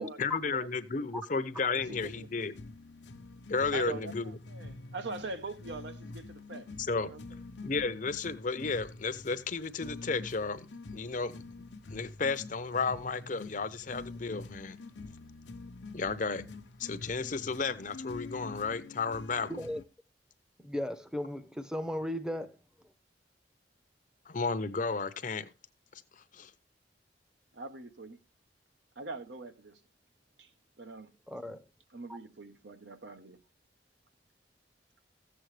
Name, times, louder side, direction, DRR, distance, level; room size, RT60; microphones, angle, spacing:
voice 1, 0.2-2.5 3.5-4.4 6.8-7.1 7.6-10.7 10.9-11.4 11.9-14.8 15.9-16.5 16.8-19.5 24.3-25.5 25.9-26.5, left 4 dB, 45° left, 0.7 m, -33 dB
voice 2, 1.7-2.3 3.7-6.7 7.1-7.2 27.5-28.2 29.0-29.8 30.4-30.5 30.8-31.1 31.9-33.4, right 3 dB, 80° right, 1.1 m, -42 dB
sound 1, 1.8-19.8, left 3 dB, 80° left, 0.8 m, -46 dB
voice 3, 19.5-19.8 20.6-22.5 31.3-31.6, equal, 5° right, 0.7 m, -36 dB
14.5 x 7.8 x 3.2 m
head